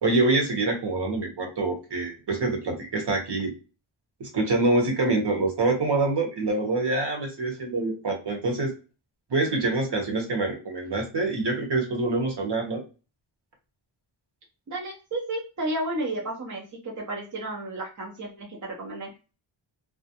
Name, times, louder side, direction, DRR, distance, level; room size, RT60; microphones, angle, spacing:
voice 1, 0.0-3.5 4.2-8.7 9.3-12.8, right 2 dB, 55° right, 2 dB, 1.0 m, -25 dB
voice 2, 14.7-19.1, right 1 dB, 35° right, -2 dB, 0.6 m, -32 dB
2.4 x 2.1 x 2.7 m, 0.33 s
cardioid pair, 65°, 50 cm